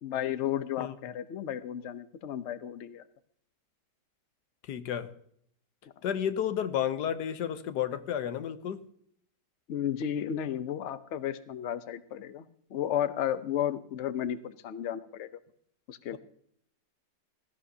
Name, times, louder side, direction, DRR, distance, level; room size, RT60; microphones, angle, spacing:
voice 1, 0.0-3.0 9.7-15.4 15.9-16.2, left 10 dB, 55° left, 13 dB, 0.8 m, -33 dB
voice 2, 4.7-5.1 6.0-8.8 16.1-16.2, left 9 dB, 75° left, 12 dB, 1.4 m, -31 dB
16.5 x 14.0 x 2.8 m, 0.66 s
omnidirectional pair, 1.9 m